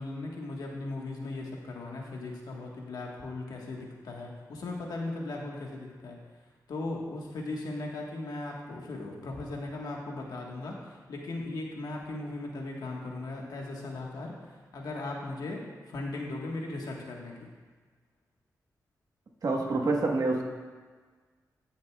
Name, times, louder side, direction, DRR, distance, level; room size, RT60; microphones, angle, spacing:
voice 1, 0.0-6.2 6.7-17.5, left 2 dB, 80° left, -1 dB, 1.5 m, -38 dB
voice 2, 19.4-20.4, right 3 dB, 65° right, 1 dB, 1.3 m, -27 dB
16.5 x 6.5 x 2.4 m, 1.5 s
cardioid pair, 65°, 7 cm